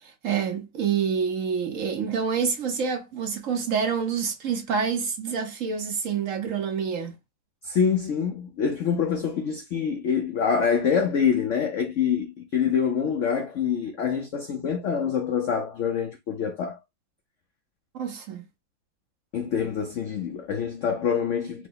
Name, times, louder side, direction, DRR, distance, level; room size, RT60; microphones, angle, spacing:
voice 1, 0.0-7.1 17.9-18.4, right 6 dB, 60° right, 0.8 m, -27 dB
voice 2, 7.6-16.8 19.3-21.7, left 7 dB, 85° left, 0.6 m, -25 dB
4.8 x 2.0 x 3.8 m
omnidirectional pair, 2.0 m